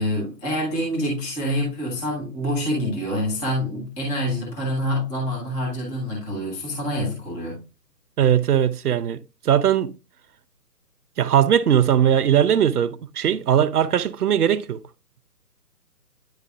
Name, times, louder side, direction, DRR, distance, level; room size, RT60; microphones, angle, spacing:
voice 1, 0.0-7.6, equal, 5° left, 0.9 m, -26 dB
voice 2, 8.2-9.2 9.5-9.9 11.2-14.8, right 9 dB, 65° right, 0.6 m, -19 dB
9.4 x 5.0 x 2.3 m
figure-of-eight pair, 150°, 49 cm